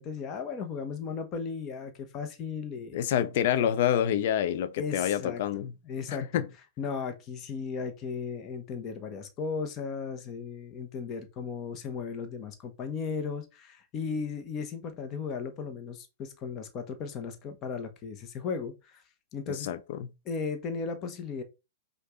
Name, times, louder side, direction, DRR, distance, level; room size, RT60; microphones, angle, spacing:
voice 1, 0.0-3.0 4.8-5.4 5.8-6.4 6.8-19.0 19.3-19.7 20.2-21.4, left 5 dB, 35° left, 1.2 m, -36 dB
voice 2, 2.9-5.7 6.1-6.5 19.5-20.1, left 10 dB, 55° left, 0.6 m, -27 dB
5.3 x 2.6 x 3.7 m
hypercardioid pair, 120°, 0 cm